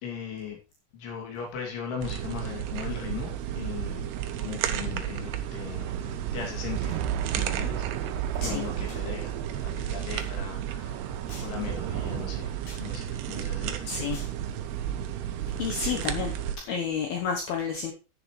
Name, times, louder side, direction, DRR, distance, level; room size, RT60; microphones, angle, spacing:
voice 1, 0.0-0.6 0.9-4.1 4.4-8.2 8.4-14.3, left 7 dB, 85° left, 1 dB, 5.1 m, -39 dB
sound 1, 2.0-16.6, right 10 dB, 75° right, 2.8 m, -33 dB
sound 2, 3.1-16.7, right 10 dB, 90° right, 3.1 m, -37 dB
sound 3, 8.9-9.1 10.1-10.3 11.3-11.6 12.6-12.9 14.1-14.4 15.8-16.1, left 2 dB, 45° left, 6.5 m, -46 dB
voice 2, 13.9-14.2 15.6-16.3 16.7-17.9, left 6 dB, 70° left, 3 dB, 2.6 m, -30 dB
11.5 x 10.5 x 3.2 m, 0.31 s
omnidirectional pair, 5.2 m